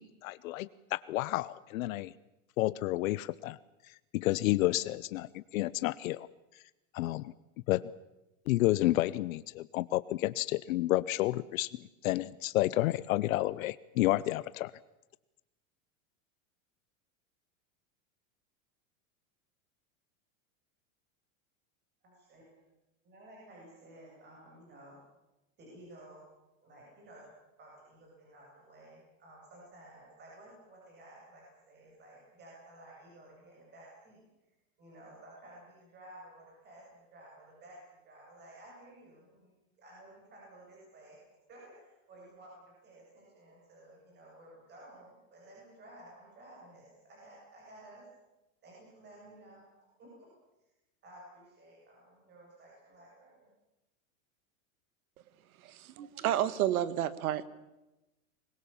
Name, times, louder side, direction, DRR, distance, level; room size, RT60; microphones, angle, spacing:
voice 1, 0.0-2.1 2.6-3.6 3.9-6.3 6.9-7.3 7.7-7.9 8.5-14.7, left 17 dB, 70° left, 17 dB, 0.8 m, -30 dB
voice 2, 22.0-22.6 23.0-25.0 25.6-26.2 26.6-27.3 27.6-34.2 34.8-41.2 41.5-48.0 48.6-49.6 50.0-50.3 51.0-53.5, right 1 dB, 25° right, -3 dB, 7.7 m, -54 dB
voice 3, 55.7-57.5, right 12 dB, 90° right, 15 dB, 1.7 m, -30 dB
24.5 x 21.5 x 7.1 m, 0.99 s
supercardioid pair, 165°, 42 cm